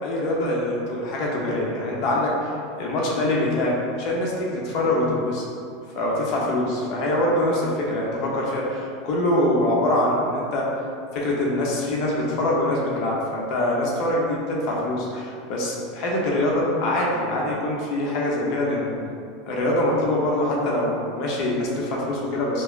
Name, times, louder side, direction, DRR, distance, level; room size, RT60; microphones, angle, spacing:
voice 1, 0.0-2.5 2.8-5.4 5.9-10.7 11.1-19.0 19.5-22.6, left 1 dB, 55° left, -3 dB, 0.8 m, -24 dB
3.0 x 2.1 x 3.8 m, 2.4 s
hypercardioid pair, 95°, 0 cm